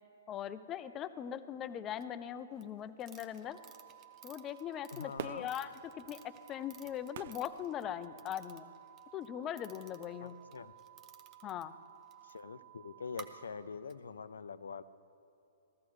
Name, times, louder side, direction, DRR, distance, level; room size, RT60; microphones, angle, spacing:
voice 1, 0.3-3.6 4.2-5.7 6.0-8.7 9.1-10.3 11.4-11.7, left 10 dB, 25° left, 13 dB, 0.4 m, -40 dB
sound 1, 2.0-2.1 2.6-9.3 9.6-12.4 13.1-13.2 13.9-14.0, right 8 dB, 25° right, 0.7 m, -56 dB
sound 2, 3.4-13.5, right 14 dB, 75° right, 1.4 m, -57 dB
voice 2, 4.9-5.5 10.2-10.7 12.2-14.8, left 5 dB, 85° left, 14 dB, 0.4 m, -44 dB
Fireworks, 5.2-8.5 9.1-9.2, right 10 dB, 55° right, 0.3 m, -48 dB
14.5 x 13.5 x 3.1 m, 2.8 s
hypercardioid pair, 140°, 0 cm